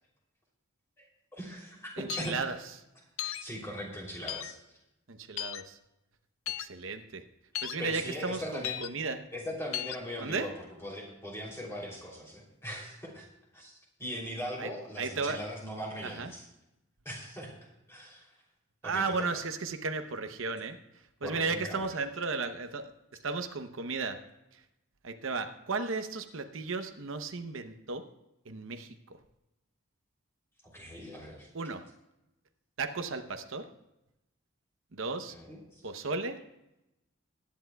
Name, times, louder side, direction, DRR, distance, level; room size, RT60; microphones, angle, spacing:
voice 1, 1.3-2.4 3.2-4.6 7.8-8.8 9.3-13.3 13.5-16.4 17.0-17.6 17.9-18.4 18.8-19.2 21.2-21.9 30.7-31.5 35.3-35.8, equal, 15° left, -3 dB, 3.0 m, -40 dB
voice 2, 2.0-2.5 5.1-5.8 6.6-7.2 7.6-9.2 10.2-10.5 14.6-14.7 15.0-15.4 16.0-16.3 18.8-20.8 21.2-22.9 23.2-24.2 25.0-28.0 28.5-28.9 31.5-31.8 32.8-33.6 34.9-35.3 35.8-36.4, right 4 dB, 70° right, 7 dB, 0.8 m, -34 dB
sound 1, 2.1-2.3 3.2-3.4 4.3-4.5 5.4-5.6 6.5-6.7 7.5-7.8 8.6-8.9 9.7-10.0, left 13 dB, 75° left, 0.5 m, -35 dB
21.5 x 10.5 x 2.3 m, 0.92 s
head